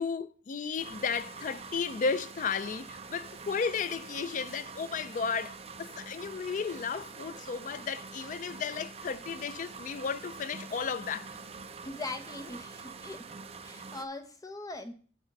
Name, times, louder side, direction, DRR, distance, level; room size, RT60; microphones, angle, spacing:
voice 1, 0.0-11.3, left 5 dB, 45° left, 0.3 m, -34 dB
sound 1, 0.8-14.0, right 4 dB, 35° right, 0.5 m, -45 dB
voice 2, 11.8-13.2 13.6-14.9, left 2 dB, 20° left, 0.7 m, -41 dB
9.6 x 4.2 x 5.2 m
head